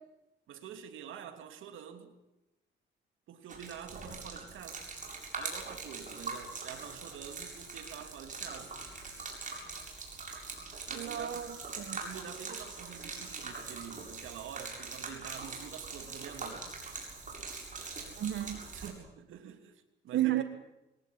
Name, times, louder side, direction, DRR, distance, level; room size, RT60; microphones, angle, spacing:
voice 1, 0.5-2.2 3.3-4.8 5.3-8.8 10.9-11.5 12.0-16.7 18.7-20.4, right 8 dB, 85° right, 3.0 m, -47 dB
Gurgling / Liquid, 3.5-18.9, right 4 dB, 40° right, 7.7 m, -43 dB
voice 2, 10.9-12.0 18.1-18.6 20.1-20.4, right 13 dB, 65° right, 1.4 m, -33 dB
23.0 x 18.0 x 9.6 m
cardioid pair, 90°, 20 cm